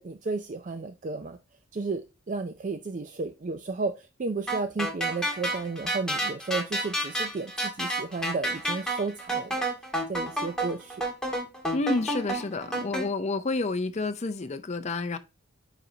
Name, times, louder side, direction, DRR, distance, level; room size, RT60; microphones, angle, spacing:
voice 1, 0.0-1.4 1.7-9.7 10.1-11.0, right 3 dB, 40° right, 0.4 m, -33 dB
sound 1, 4.5-13.0, right 1 dB, 5° left, 1.6 m, -30 dB
voice 2, 11.7-15.2, left 3 dB, 35° left, 0.6 m, -29 dB
9.3 x 4.1 x 2.7 m
head